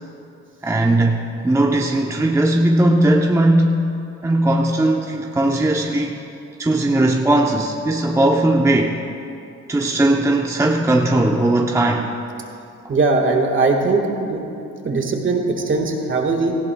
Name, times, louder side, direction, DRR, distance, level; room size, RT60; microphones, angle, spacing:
voice 1, 0.6-3.8 4.2-6.2 6.6-9.0 9.7-12.1, right 1 dB, 10° right, 0 dB, 0.7 m, -18 dB
voice 2, 12.9-14.4 14.8-16.5, right 3 dB, 40° right, 3 dB, 1.6 m, -19 dB
18.0 x 15.0 x 2.3 m, 2.7 s
cardioid pair, 90°, 30 cm